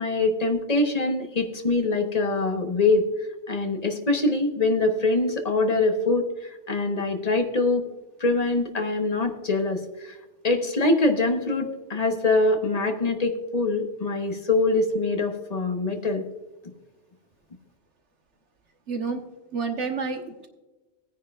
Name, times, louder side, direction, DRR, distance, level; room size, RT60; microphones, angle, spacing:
voice 1, 0.0-3.1 3.5-7.9 8.2-10.2 10.4-16.2, left 2 dB, 35° left, 5 dB, 1.1 m, -24 dB
voice 2, 18.9-19.2 19.5-20.5, right 4 dB, 75° right, 5 dB, 1.5 m, -29 dB
17.5 x 9.6 x 2.4 m, 1.1 s
omnidirectional pair, 1.2 m